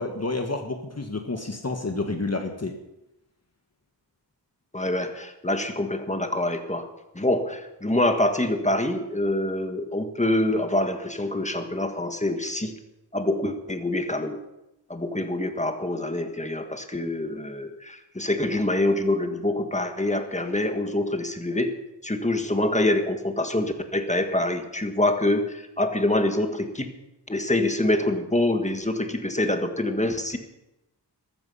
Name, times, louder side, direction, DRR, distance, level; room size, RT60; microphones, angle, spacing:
voice 1, 0.0-2.7, left 2 dB, 35° left, 4 dB, 1.5 m, -29 dB
voice 2, 4.7-6.9 7.1-12.8 13.1-14.4 14.9-21.8 22.0-26.9 27.3-30.4, left 1 dB, 15° left, 6 dB, 1.7 m, -25 dB
14.0 x 14.0 x 5.6 m, 0.94 s
wide cardioid pair, 70°, 43 cm